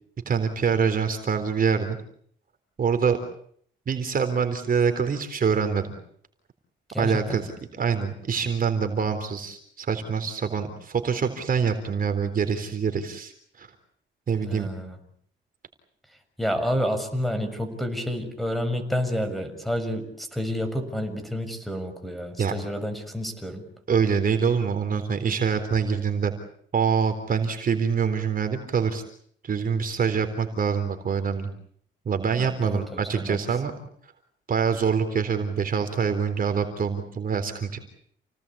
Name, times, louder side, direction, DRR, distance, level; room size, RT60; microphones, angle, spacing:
voice 1, 0.3-2.0 2.8-3.2 3.9-5.9 7.0-7.5 7.8-13.3 13.6-13.7 14.3-14.7 22.4-22.5 23.9-26.3 26.7-29.0 29.4-31.5 32.1-33.7 34.5-37.8, right 6 dB, 45° right, 7 dB, 3.9 m, -25 dB
voice 2, 6.9-7.4 14.5-15.0 16.4-23.7 32.3-33.4, equal, ahead, 8 dB, 6.4 m, -29 dB
29.5 x 19.0 x 8.7 m, 0.64 s
cardioid pair, 90°, 20 cm